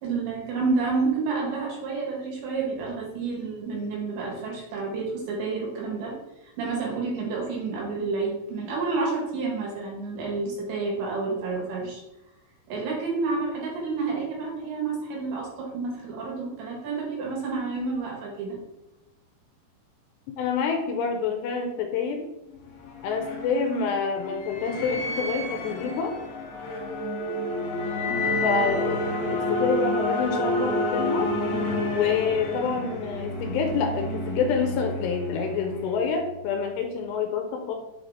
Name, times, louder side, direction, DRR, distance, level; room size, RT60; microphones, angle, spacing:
voice 1, 0.0-6.1 6.4-12.0 12.7-18.6, right 4 dB, 75° right, -3 dB, 3.9 m, -29 dB
voice 2, 20.4-22.3 23.0-26.1 28.4-31.3 31.9-37.8, left 5 dB, 85° left, 3 dB, 2.6 m, -27 dB
sound 1, 22.5-36.3, left 1 dB, 65° left, 3.0 m, -29 dB
7.3 x 3.8 x 3.6 m, 0.93 s
omnidirectional pair, 5.2 m